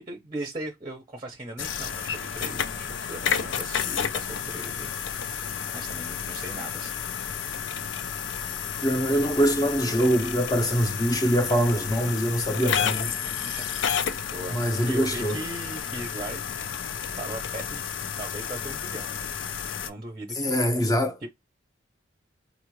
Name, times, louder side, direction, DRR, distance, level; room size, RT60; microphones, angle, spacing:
voice 1, 0.0-7.0 12.8-13.7 14.1-14.6 14.9-16.4 17.2-17.9 18.2-20.6 21.2-21.3, right 2 dB, 25° right, 0.7 m, -39 dB
sound 1, 1.6-19.9, left 7 dB, 85° left, 0.5 m, -31 dB
voice 2, 8.8-13.1 14.5-15.4 20.4-21.2, equal, 20° left, 0.7 m, -24 dB
3.9 x 2.5 x 3.0 m
head